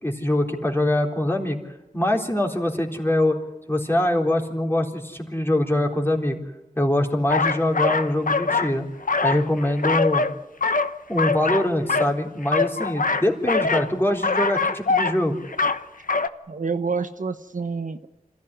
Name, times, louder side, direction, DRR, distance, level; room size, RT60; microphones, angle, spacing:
voice 1, 0.0-1.6 1.9-3.4 3.7-6.4 6.8-8.9 9.2-10.3 11.1-15.4, left 1 dB, 15° left, 1 dB, 4.0 m, -23 dB
sound 1, 7.3-8.7 9.0-10.4 10.6-12.1 12.4-13.9 14.2-15.2 15.5-15.8 16.1-16.3, left 4 dB, 70° left, 1.0 m, -23 dB
voice 2, 16.5-18.1, right 5 dB, 65° right, 8 dB, 1.1 m, -28 dB
26.5 x 15.5 x 10.0 m, 0.96 s
wide cardioid pair, 65°, 14 cm